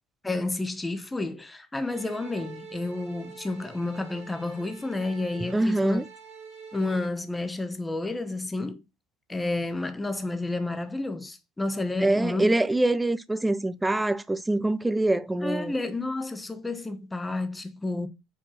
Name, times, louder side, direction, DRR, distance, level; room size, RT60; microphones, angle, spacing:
voice 1, 0.2-6.0 6.7-8.8 9.3-12.6 15.4-18.1, left 2 dB, 10° left, 0.8 m, -30 dB
sound 1, 1.8-7.1, right 5 dB, 55° right, 2.3 m, -47 dB
voice 2, 5.5-6.0 12.0-15.7, right 2 dB, 5° right, 0.4 m, -24 dB
4.9 x 4.4 x 4.3 m
supercardioid pair, 135°, 0 cm